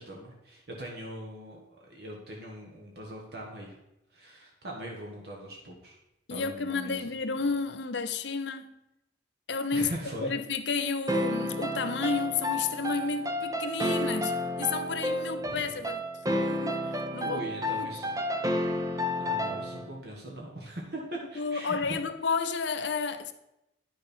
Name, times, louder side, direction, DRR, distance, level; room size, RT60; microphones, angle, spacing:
voice 1, 0.0-3.8 4.1-5.9 6.3-7.1 9.7-10.3 15.4-15.7 17.2-18.2 19.2-22.0, right 1 dB, 55° right, 1.5 m, -41 dB
voice 2, 6.3-8.7 9.5-9.9 10.2-17.4 17.8-17.9 21.4-23.3, left 4 dB, 70° left, 0.7 m, -31 dB
sound 1, 11.1-20.0, left 1 dB, 20° right, 0.6 m, -31 dB
10.0 x 6.3 x 4.4 m
head